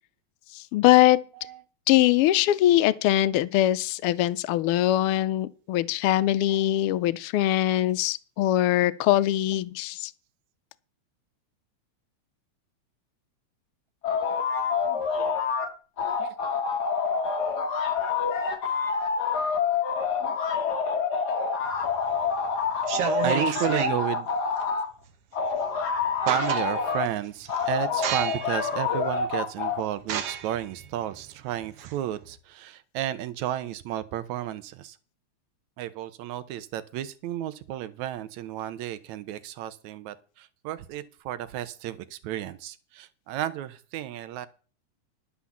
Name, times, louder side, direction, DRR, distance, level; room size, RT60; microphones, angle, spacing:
voice 1, 0.5-1.2 1.9-10.1, left 14 dB, 85° left, 1.2 m, -22 dB
sound 1, 14.0-15.7 16.0-24.9 25.3-27.1 27.5-29.8, left 5 dB, 45° left, 1.5 m, -27 dB
sound 2, 21.8-22.2 22.8-24.0 25.6-25.7 26.0-26.9 27.4-27.6 28.0-28.6 29.1-29.2 30.0-32.3, right 8 dB, 60° right, 2.0 m, -30 dB
voice 2, 23.2-24.3 26.3-35.0 35.8-44.5, right 12 dB, 80° right, 2.1 m, -32 dB
11.5 x 6.1 x 7.2 m
omnidirectional pair, 3.3 m